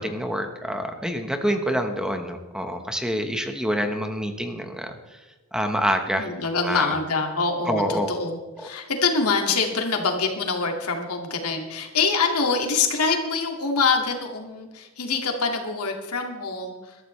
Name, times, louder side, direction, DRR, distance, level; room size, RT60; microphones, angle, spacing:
voice 1, 0.0-5.2 5.5-6.3 6.6-6.9 7.7-8.1 8.6-8.7, equal, 5° right, 5 dB, 1.2 m, -27 dB
voice 2, 6.2-17.0, left 4 dB, 85° left, 3 dB, 2.2 m, -25 dB
21.5 x 13.0 x 3.3 m, 1.2 s
head